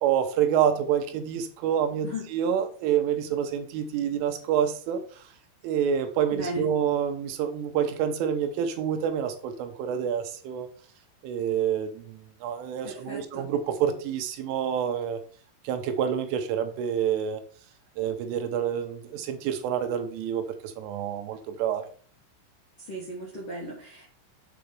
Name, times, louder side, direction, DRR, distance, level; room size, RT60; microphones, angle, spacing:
voice 1, 0.0-5.3 5.6-10.7 11.2-15.2 15.6-17.4 18.0-21.9, right 8 dB, 80° right, 7 dB, 3.3 m, -27 dB
voice 2, 6.3-6.7 12.8-13.5 22.8-24.1, equal, 60° left, -4 dB, 1.6 m, -36 dB
7.9 x 4.1 x 5.2 m, 0.43 s
omnidirectional pair, 5.8 m